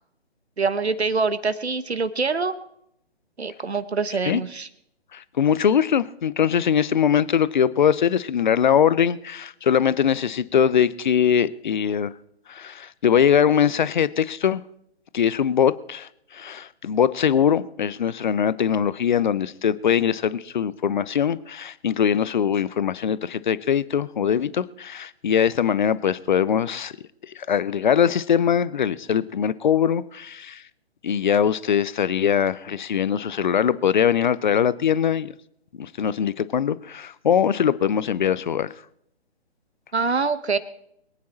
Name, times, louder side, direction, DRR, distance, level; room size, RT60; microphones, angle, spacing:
voice 1, 0.6-2.5 3.4-4.7 39.9-40.6, right 4 dB, 75° right, 13 dB, 1.2 m, -24 dB
voice 2, 5.1-12.1 12.5-14.6 15.1-26.9 27.4-30.6 31.0-35.3 35.8-38.7, left 8 dB, 45° left, 18 dB, 0.7 m, -22 dB
22.5 x 9.5 x 4.3 m, 0.74 s
figure-of-eight pair, 135°, 33 cm